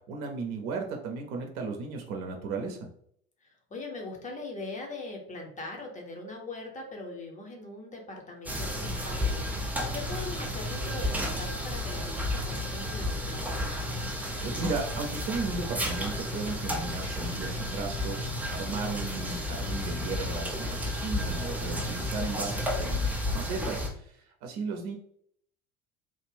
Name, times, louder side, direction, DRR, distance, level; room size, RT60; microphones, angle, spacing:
voice 1, 0.1-2.9 14.4-24.1 24.4-25.0, right 4 dB, 50° right, 2 dB, 0.7 m, -35 dB
voice 2, 3.4-11.1 11.4-13.8 21.2-21.9, left 2 dB, 15° left, 1 dB, 0.8 m, -41 dB
sound 1, 8.5-23.9, left 1 dB, 5° right, 0.5 m, -32 dB
3.4 x 2.5 x 3.3 m, 0.66 s
figure-of-eight pair, 70°, 43 cm